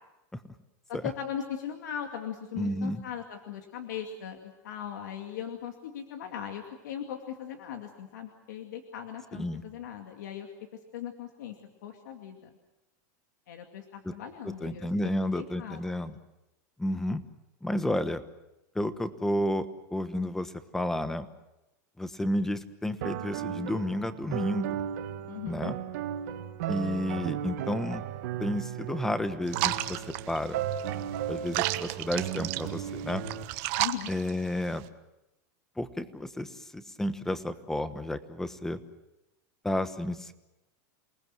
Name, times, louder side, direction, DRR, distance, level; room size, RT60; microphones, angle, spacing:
voice 1, 0.9-10.5 10.9-11.6 11.8-12.5 13.5-16.0 25.3-25.7 33.8-34.1, left 9 dB, 90° left, 4 dB, 2.4 m, -39 dB
voice 2, 2.6-3.0 9.3-9.6 14.0-14.1 14.6-16.2 16.8-17.2 17.6-18.2 18.7-21.3 22.0-24.7 25.5-25.8 26.7-28.0 28.4-30.6 31.3-33.2 34.1-34.8 35.8-38.8 39.6-40.3, left 1 dB, 5° left, 11 dB, 1.2 m, -31 dB
sound 1, 23.0-33.4, right 10 dB, 70° right, 2.0 m, -35 dB
sound 2, 29.5-34.9, right 17 dB, 50° right, 1.3 m, -33 dB
28.5 x 19.5 x 7.7 m, 0.97 s
supercardioid pair, 150°, 9 cm